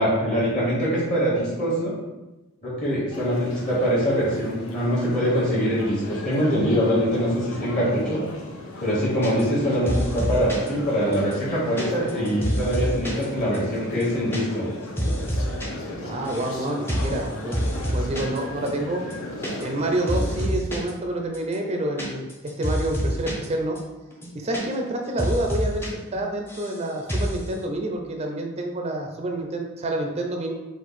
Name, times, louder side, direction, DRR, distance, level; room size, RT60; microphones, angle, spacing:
voice 1, 0.0-1.9 2.6-8.2 8.8-14.7, equal, 40° left, -7 dB, 1.3 m, -23 dB
sound 1, 3.1-20.5, left 1 dB, 75° left, 0.7 m, -36 dB
sound 2, 9.2-9.6 9.9-10.7 11.1-13.2 13.5-13.6 13.9-14.4 14.7-15.7 15.9-16.6 16.9-17.2 17.5-18.4 18.7-18.8 19.0-19.8 20.1-20.9 21.3-23.5 23.8-23.9 24.1-24.9 25.2-25.9 26.1-26.8 27.1-27.4, equal, 10° left, 0.7 m, -27 dB
voice 2, 16.0-17.6 17.9-19.0 19.6-22.3 22.6-23.8 24.3-25.8 26.1-30.5, right 1 dB, 30° right, 2 dB, 0.4 m, -28 dB
4.5 x 2.4 x 4.0 m, 1.1 s
head